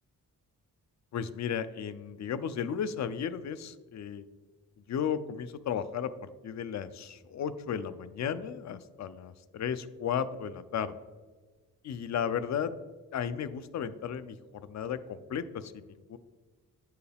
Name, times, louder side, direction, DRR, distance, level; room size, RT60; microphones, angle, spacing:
voice 1, 1.1-4.2 4.9-11.0 11.8-12.7 13.1-16.2, left 8 dB, 55° left, 14 dB, 0.4 m, -34 dB
9.0 x 4.7 x 3.4 m, 1.4 s
wide cardioid pair, 145°, 33 cm